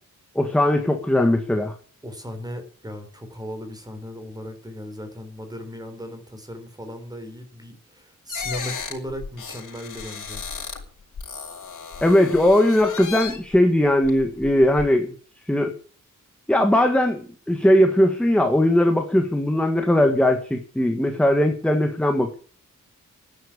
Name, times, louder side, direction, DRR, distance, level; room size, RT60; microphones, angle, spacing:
voice 1, 0.3-1.7 12.0-15.1 15.5-15.8 16.5-22.4, left 1 dB, 5° left, 4 dB, 1.5 m, -19 dB
voice 2, 2.0-10.4, equal, 10° right, 7 dB, 3.7 m, -37 dB
sound 1, 8.3-10.8 11.2-13.6 14.0-14.8, left 6 dB, 70° left, 5.5 m, -35 dB
12.5 x 10.5 x 8.7 m, 0.43 s
wide cardioid pair, 175°, 32 cm